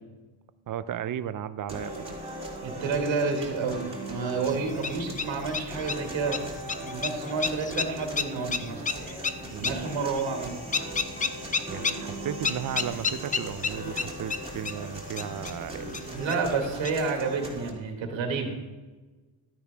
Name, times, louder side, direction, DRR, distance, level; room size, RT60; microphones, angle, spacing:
voice 1, 0.7-2.1 9.5-9.8 11.7-16.4, right 10 dB, 40° right, 14 dB, 0.6 m, -35 dB
sound 1, 1.7-17.7, right 1 dB, 10° right, 2.6 m, -39 dB
voice 2, 2.6-6.5 6.8-8.8 9.6-10.6 16.1-18.6, right 4 dB, 60° right, 2 dB, 1.9 m, -30 dB
sound 2, 4.5-17.2, left 5 dB, 20° left, 0.3 m, -34 dB
12.5 x 9.5 x 3.5 m, 1.2 s
cardioid pair, 105°, 50 cm